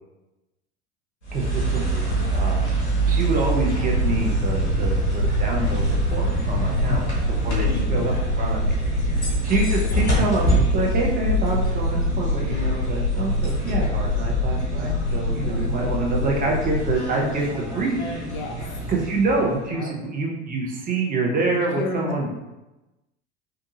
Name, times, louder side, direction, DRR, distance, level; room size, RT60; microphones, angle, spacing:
sound 1, 1.2-19.7, right 2 dB, 85° left, 1.0 m, -26 dB
voice 1, 1.3-2.7 3.0-8.7 9.2-18.0 18.9-22.3, right 3 dB, 25° right, -1 dB, 0.8 m, -26 dB
voice 2, 2.1-2.6 4.5-4.9 6.5-7.1 7.5-8.2 8.9-9.4 12.0-12.2 14.8-15.7 17.1-17.8 18.2-18.6 19.7-19.9 21.4-22.2, left 4 dB, 40° left, 2 dB, 0.5 m, -35 dB
sound 2, 3.9-17.0, left 3 dB, 75° right, 0.6 m, -26 dB
3.8 x 2.5 x 2.7 m, 1.0 s
figure-of-eight pair, 70°, 33 cm